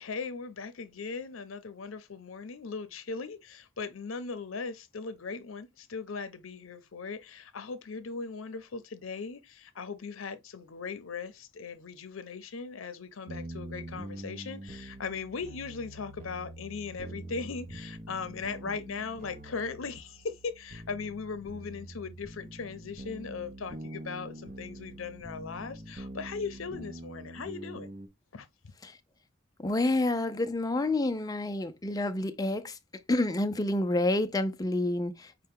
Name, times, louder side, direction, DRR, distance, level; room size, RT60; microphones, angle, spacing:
voice 1, 0.0-27.9 28.3-28.5, left 5 dB, 85° left, 0.6 m, -39 dB
sound 1, 13.3-28.1, right 1 dB, 40° right, 0.6 m, -44 dB
voice 2, 29.6-32.8 33.1-35.3, left 2 dB, 20° left, 0.4 m, -28 dB
5.4 x 2.2 x 3.5 m
head